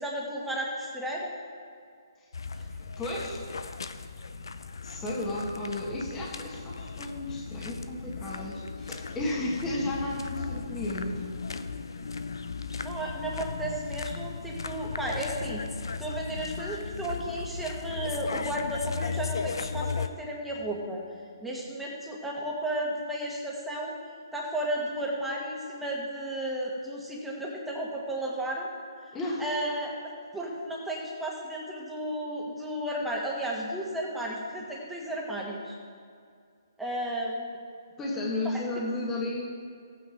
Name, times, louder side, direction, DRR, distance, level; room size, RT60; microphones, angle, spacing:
voice 1, 0.0-1.3 2.5-2.6 12.8-15.6 16.0-21.0 21.4-23.9 24.3-28.7 29.4-29.9 30.3-35.7 36.8-37.6 38.4-38.6, right 1 dB, 5° right, -3 dB, 1.6 m, -33 dB
sound 1, 2.3-20.1, left 4 dB, 75° left, 0.6 m, -36 dB
voice 2, 3.0-3.4 4.8-11.2 29.1-29.4 38.0-39.4, left 1 dB, 15° left, -4 dB, 1.5 m, -33 dB
15.0 x 9.1 x 3.6 m, 2.2 s
hypercardioid pair, 145°, 2 cm